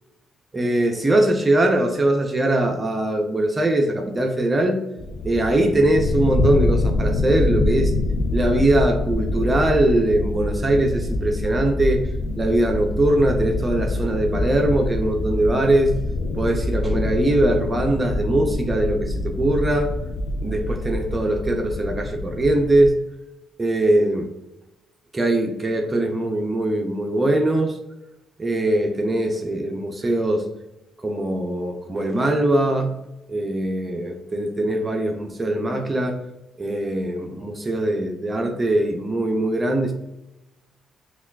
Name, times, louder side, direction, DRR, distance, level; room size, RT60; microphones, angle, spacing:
voice 1, 0.5-4.8 5.2-8.0 8.3-12.0 12.4-16.0 16.4-19.9 20.4-23.0 23.6-24.3 25.1-27.8 28.4-30.4 31.0-33.0 33.3-36.2 36.6-39.9, right 1 dB, 25° right, 3 dB, 0.5 m, -21 dB
sound 1, 5.0-22.9, left 2 dB, 65° left, 0.5 m, -25 dB
5.8 x 2.3 x 2.3 m, 0.96 s
cardioid pair, 90°, 0 cm